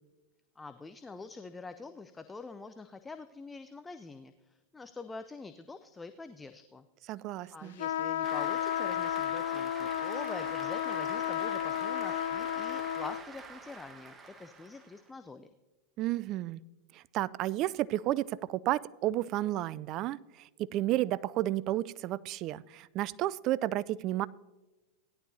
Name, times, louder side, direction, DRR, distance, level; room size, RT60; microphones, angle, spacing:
voice 1, 0.6-6.8 7.5-15.5, left 3 dB, 15° left, 10 dB, 0.5 m, -45 dB
voice 2, 7.1-7.8 16.0-16.6 16.9-20.2 20.7-24.3, right 15 dB, 45° right, 19 dB, 0.3 m, -32 dB
sound 1, 7.8-13.2, left 12 dB, 70° left, 0.3 m, -33 dB
Cheering / Applause, 8.2-15.1, right 4 dB, 25° right, 1.2 m, -46 dB
17.0 x 11.0 x 2.8 m, 1.1 s
hypercardioid pair, 100°, 0 cm